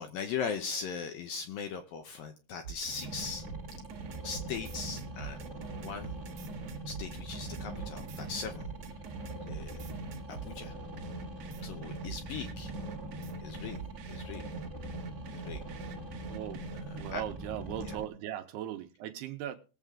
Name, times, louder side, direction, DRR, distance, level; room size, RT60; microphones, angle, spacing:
voice 1, 0.0-3.4 4.2-5.5 5.8-6.1 6.9-8.7 9.5-9.9 10.3-10.7 11.6-12.7 13.4-13.8 14.1-14.4 15.3-15.6 17.1-17.2 17.8-18.0, left 6 dB, 75° left, 2.2 m, -39 dB
sound 1, 2.6-10.5 11.0-17.1, right 5 dB, 55° right, 2.0 m, -44 dB
sound 2, 2.9-18.0, right 1 dB, 35° right, 1.1 m, -42 dB
voice 2, 16.2-16.6 16.9-19.6, right 11 dB, 75° right, 2.7 m, -38 dB
20.5 x 7.7 x 3.6 m
omnidirectional pair, 5.0 m